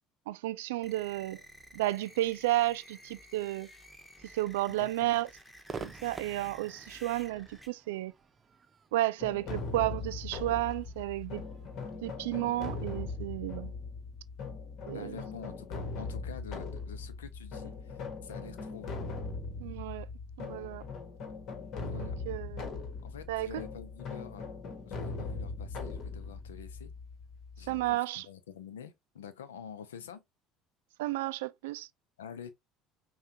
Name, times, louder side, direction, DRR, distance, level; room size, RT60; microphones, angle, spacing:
voice 1, 0.3-1.4 1.7-3.7 4.2-5.3 5.8-8.1 8.9-11.4 12.0-13.7 14.9-15.2 19.6-20.1 20.4-20.8 21.9-22.8 23.3-23.5 27.7-28.3 31.0-31.9, right 16 dB, 80° right, 0.3 m, -32 dB
sound 1, 0.8-7.7, equal, 5° left, 1.4 m, -53 dB
voice 2, 4.7-5.1 14.9-19.0 21.8-22.1 23.0-24.5 24.9-26.9 27.6-30.2 32.2-32.5, left 8 dB, 90° left, 0.6 m, -47 dB
Crowd / Fireworks, 5.7-13.0, right 5 dB, 35° right, 0.6 m, -49 dB
sound 2, 9.2-27.9, left 3 dB, 55° left, 1.4 m, -40 dB
5.6 x 2.4 x 2.7 m
hypercardioid pair, 70°, 0 cm